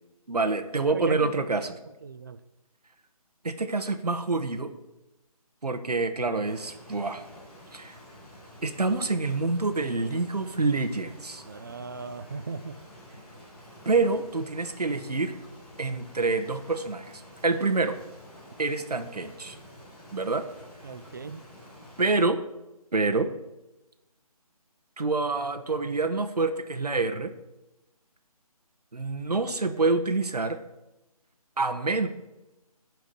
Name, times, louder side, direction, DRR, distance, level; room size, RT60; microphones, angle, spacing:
voice 1, 0.3-1.7 3.4-4.7 5.6-7.2 7.7-8.0 8.6-11.4 13.8-15.3 15.8-18.0 18.6-19.6 20.1-20.4 22.0-22.4 22.9-23.3 25.0-27.3 28.9-30.6 31.6-32.1, right 3 dB, 90° right, 6 dB, 1.0 m, -27 dB
voice 2, 0.9-1.5 2.0-2.4 11.4-12.7 20.8-21.4, right 5 dB, 30° right, 13 dB, 0.4 m, -37 dB
Rain, 6.4-22.3, left 1 dB, 5° left, 3.9 m, -49 dB
12.0 x 4.7 x 6.4 m, 0.98 s
figure-of-eight pair, 155°, 20 cm